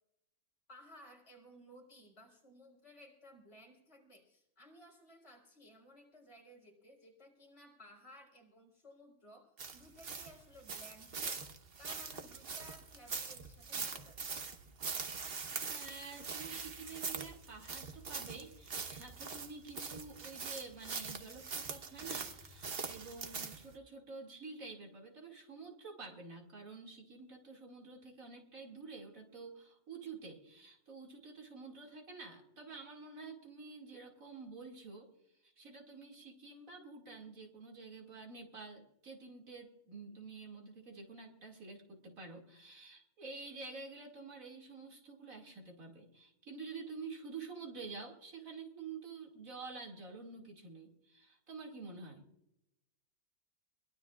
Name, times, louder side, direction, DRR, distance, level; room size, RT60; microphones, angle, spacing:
voice 1, 0.7-11.5 11.8-14.4, equal, 50° left, 0 dB, 4.2 m, -58 dB
sound 1, 9.6-23.7, right 5 dB, 45° right, 1.1 m, -43 dB
voice 2, 15.7-35.1 35.4-52.3, right 4 dB, 65° right, 1 dB, 2.7 m, -49 dB
22.5 x 19.5 x 2.4 m, 0.86 s
omnidirectional pair, 1.5 m